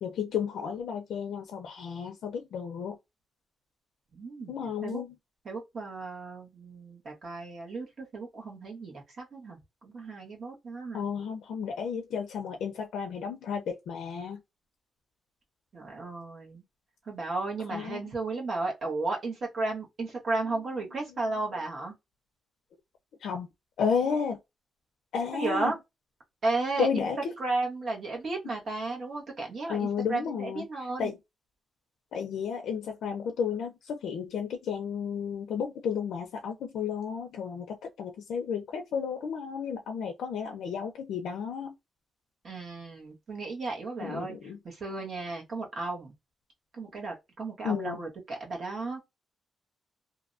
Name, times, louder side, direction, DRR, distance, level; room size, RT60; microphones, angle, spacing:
voice 1, 0.0-3.0 4.5-5.1 10.9-14.4 17.7-18.0 23.2-23.5 23.8-24.4 25.1-25.7 26.8-27.3 29.7-30.6 31.0-31.2 32.1-41.7 44.0-44.6 47.6-48.0, left 6 dB, 80° left, 0.5 m, -32 dB
voice 2, 4.1-5.0 5.4-11.1 15.7-16.6 17.1-21.9 25.3-25.8 26.4-27.0 27.4-31.1 42.4-46.1 46.7-49.0, right 3 dB, 45° right, 1.2 m, -34 dB
2.6 x 2.2 x 2.5 m
wide cardioid pair, 175°, 0 cm